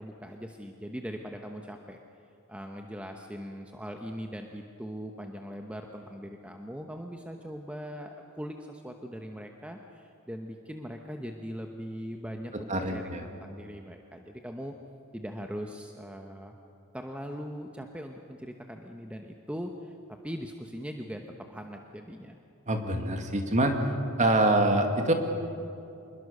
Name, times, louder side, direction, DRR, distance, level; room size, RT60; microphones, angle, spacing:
voice 1, 0.0-2.0 2.5-14.7 15.1-16.6 16.9-19.9 20.2-21.2 21.5-22.4, equal, 5° right, 3 dB, 1.0 m, -40 dB
voice 2, 12.7-13.2 22.7-23.8 24.2-25.1, right 1 dB, 35° right, 4 dB, 2.2 m, -25 dB
26.5 x 21.5 x 6.7 m, 2.7 s
head